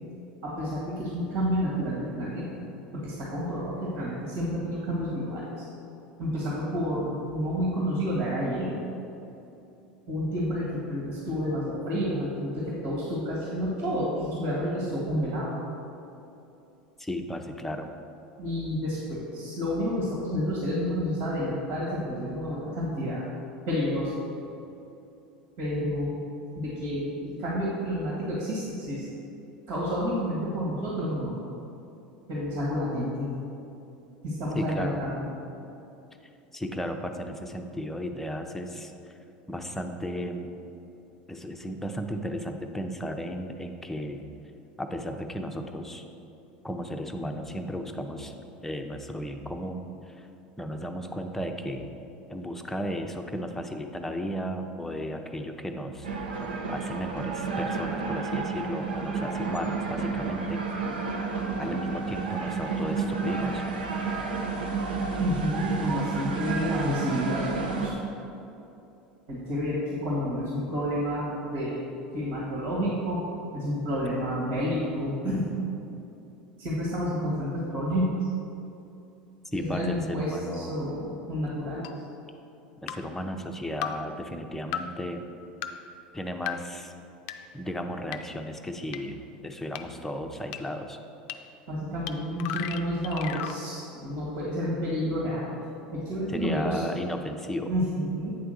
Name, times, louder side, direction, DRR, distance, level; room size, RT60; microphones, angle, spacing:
voice 1, 0.4-2.7 2.9-5.6 6.2-8.8 10.1-15.5 18.4-23.3 23.7-24.1 25.6-26.2 26.5-29.0 29.7-31.4 32.3-33.3 34.2-35.2 65.2-67.9 69.3-71.9 72.1-73.2 73.5-75.5 76.6-78.1 79.7-82.0 91.7-95.5 95.9-96.8 97.7-98.3, equal, 65° right, -6 dB, 1.8 m, -30 dB
voice 2, 17.0-17.9 34.5-35.0 36.5-39.2 39.5-40.5 41.3-44.3 44.8-46.0 46.6-48.3 48.6-50.3 50.6-51.9 52.3-56.1 56.7-60.9 61.6-63.6 79.5-80.7 82.8-85.2 86.1-86.9 87.5-91.0 96.3-97.7, equal, 5° left, 4 dB, 0.7 m, -34 dB
sound 1, 56.0-67.9, right 4 dB, 90° right, 0.8 m, -31 dB
sound 2, 81.8-81.9 82.9-83.0 83.8-83.9 84.7-84.8 85.6-85.7 86.5-86.6 87.3-87.4 88.1-88.2 88.9-89.0 89.8-89.9 90.5-90.6 91.3-91.4 92.1-92.2 92.4-93.6, left 11 dB, 65° left, 0.4 m, -33 dB
8.4 x 3.5 x 6.4 m, 2.8 s
hypercardioid pair, 85°, 5 cm